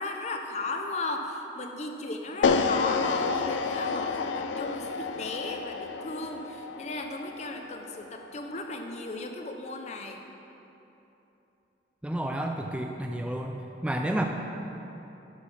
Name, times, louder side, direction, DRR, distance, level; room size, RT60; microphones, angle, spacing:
voice 1, 0.0-10.2, left 2 dB, 35° left, 4 dB, 0.6 m, -35 dB
sound 1, 2.4-8.6, left 5 dB, 80° left, 0.4 m, -30 dB
voice 2, 12.0-13.6 13.8-14.2, right 1 dB, 5° right, 2 dB, 0.3 m, -30 dB
11.0 x 4.0 x 5.6 m, 3.0 s
head